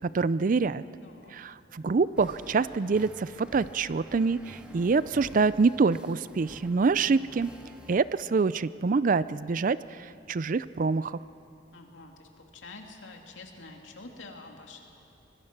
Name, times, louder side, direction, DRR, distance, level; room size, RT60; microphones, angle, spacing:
voice 1, 0.0-0.8 1.3-7.5 7.9-9.8 10.3-11.2, right 4 dB, 45° right, 17 dB, 0.4 m, -26 dB
voice 2, 1.0-1.3 11.7-14.8, left 3 dB, 85° left, 2 dB, 2.5 m, -47 dB
sound 1, 2.1-8.0, equal, 5° right, 1.8 m, -49 dB
25.0 x 20.5 x 6.0 m, 2.7 s
head